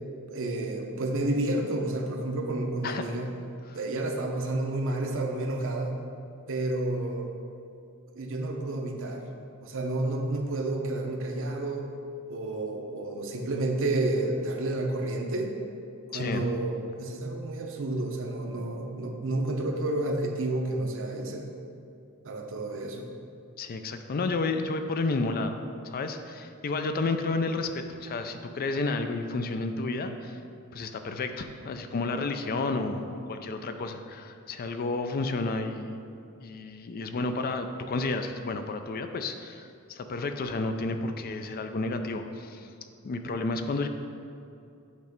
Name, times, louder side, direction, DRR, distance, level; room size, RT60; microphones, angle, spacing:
voice 1, 0.3-3.3 3.7-6.0 6.5-7.3 8.1-9.3 9.6-11.9 12.3-15.5 16.1-21.5 22.2-23.1, right 2 dB, 65° right, 3 dB, 0.7 m, -30 dB
voice 2, 16.1-16.5 23.6-25.6 25.8-30.4 30.7-36.0 36.4-42.7 43.0-43.9, left 3 dB, 45° left, 7 dB, 0.4 m, -31 dB
8.1 x 3.1 x 5.1 m, 2.5 s
head